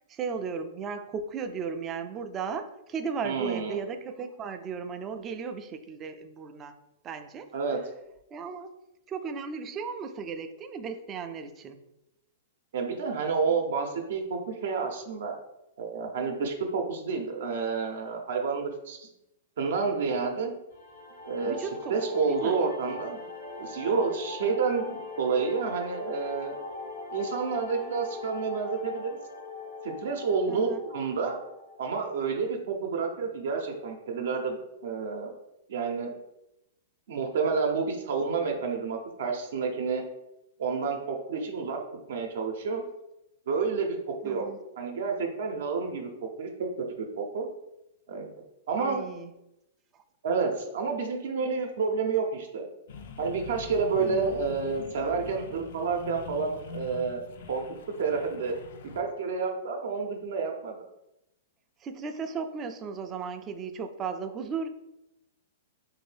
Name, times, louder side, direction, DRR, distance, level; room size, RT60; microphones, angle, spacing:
voice 1, 0.1-6.8 7.0-7.5 8.3-8.7 9.1-11.8 21.4-22.6 30.5-30.8 44.2-44.6 48.8-49.3 49.9-50.0 54.0-54.3 61.8-64.7, right 5 dB, 25° right, 7 dB, 0.3 m, -36 dB
voice 2, 3.2-3.8 7.5-7.8 12.7-15.4 15.8-19.1 19.6-20.5 21.2-23.2 23.6-26.6 27.1-29.2 29.8-31.4 31.8-35.3 35.7-36.2 37.1-40.0 40.6-41.8 42.1-42.8 43.5-44.5 44.8-46.1 46.4-47.5 48.1-48.3 48.7-49.0 50.2-52.7 53.2-57.6 58.0-58.5 58.9-60.8, right 5 dB, 70° right, 2 dB, 0.6 m, -29 dB
sound 1, 20.7-31.8, left 3 dB, 80° left, 1.1 m, -41 dB
sound 2, 52.9-59.0, left 5 dB, 65° left, 0.4 m, -44 dB
2.9 x 2.6 x 3.2 m, 0.88 s
hypercardioid pair, 145°, 0 cm